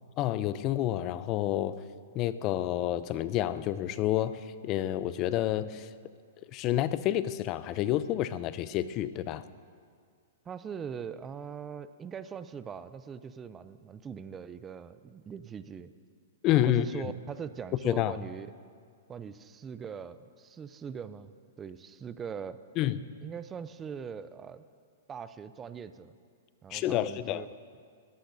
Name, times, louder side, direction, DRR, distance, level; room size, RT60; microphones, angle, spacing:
voice 1, 0.2-1.8 2.1-5.9 6.5-9.4 16.4-17.1 17.8-18.1 22.8-23.0 26.7-27.4, left 13 dB, 35° left, 15 dB, 0.5 m, -29 dB
voice 2, 10.5-15.9 16.5-18.5 19.1-21.3 21.6-22.6 23.2-24.6 25.1-26.1 26.6-27.5, right 7 dB, 20° right, 14 dB, 0.5 m, -41 dB
21.0 x 14.0 x 2.7 m, 2.1 s
hypercardioid pair, 120°, 0 cm